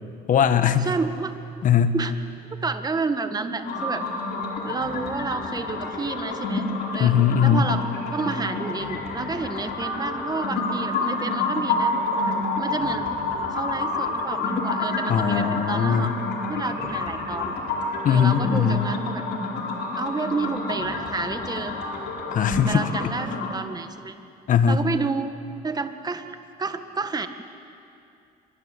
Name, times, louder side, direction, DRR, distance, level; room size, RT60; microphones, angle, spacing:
voice 1, 0.3-0.9 1.6-2.0 7.0-7.7 15.1-16.1 18.0-18.9 22.3-23.1 24.5-24.8, left 8 dB, 50° left, 10 dB, 1.3 m, -20 dB
voice 2, 0.8-1.3 1.9-2.1 2.5-4.0 4.6-6.7 6.9-7.1 7.4-11.9 12.3-13.1 13.5-16.1 16.5-17.6 18.1-19.2 19.9-21.7 22.7-24.1 24.7-25.3 25.6-27.3, right 4 dB, 25° right, 8 dB, 1.8 m, -30 dB
sound 1, 3.6-23.6, left 3 dB, 75° left, 4.3 m, -28 dB
27.5 x 23.0 x 8.3 m, 2.5 s
cardioid pair, 110°, 17 cm